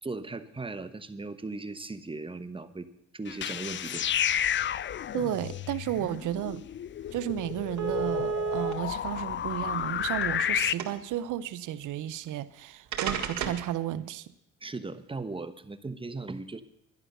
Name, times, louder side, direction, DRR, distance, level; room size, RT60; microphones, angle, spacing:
voice 1, 0.0-2.9 3.1-4.1 14.6-16.6, right 3 dB, 15° right, 1.0 m, -38 dB
sound 1, 3.3-10.7, left 10 dB, 40° left, 0.4 m, -31 dB
voice 2, 5.1-6.6 7.1-14.3, right 12 dB, 80° right, 0.8 m, -33 dB
sound 2, 6.7-6.8 7.1-7.2 7.8-8.7 9.6-10.4 10.8-11.2 12.3-12.4 12.9-13.7, right 6 dB, 65° right, 2.1 m, -31 dB
12.0 x 11.0 x 6.7 m
cardioid pair, 90°, 30 cm